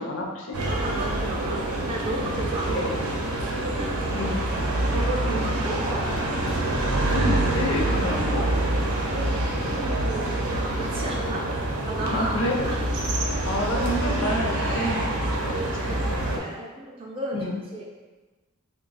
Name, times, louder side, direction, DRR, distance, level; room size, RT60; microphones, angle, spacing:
voice 1, 0.0-0.5 2.7-3.0 4.1-4.5 5.2-5.5 7.1-8.4 12.0-12.6 13.5-16.0 17.3-17.6, left 1 dB, 60° left, 0 dB, 0.5 m, -29 dB
sound 1, 0.5-16.4, right 1 dB, 90° right, 0.6 m, -26 dB
voice 2, 0.7-3.1 3.6-4.4 4.9-6.1 9.1-13.4 15.8-17.4 17.7-17.9, right 1 dB, 25° right, -2 dB, 0.4 m, -34 dB
3.2 x 2.2 x 3.9 m, 1.2 s
head